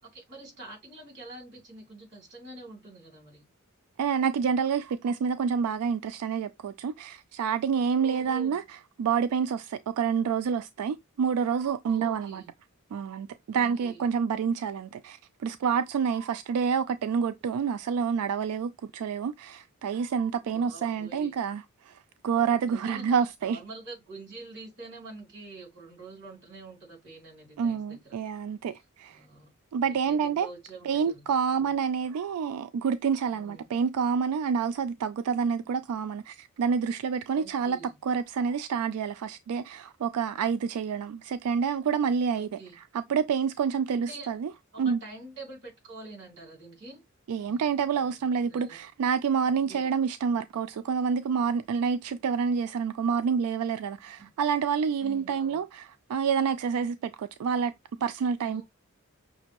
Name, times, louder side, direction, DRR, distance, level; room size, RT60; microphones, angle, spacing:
voice 1, 0.0-3.5 8.0-8.6 11.9-12.5 13.5-14.0 20.5-21.4 22.3-28.2 29.1-29.5 29.8-31.7 33.3-33.7 37.3-38.0 42.3-42.8 43.9-44.3 44.7-47.0 47.5-48.8 49.5-49.9 54.2-54.3 55.0-55.6 58.5-58.6, right 2 dB, 55° right, 2.9 m, -46 dB
voice 2, 4.0-12.4 12.9-23.6 27.6-29.2 29.7-30.5 30.8-37.8 38.0-42.5 42.8-44.5 44.8-45.0 47.3-57.7 58.0-58.6, right 6 dB, 90° right, 0.3 m, -28 dB
6.0 x 2.5 x 2.9 m
head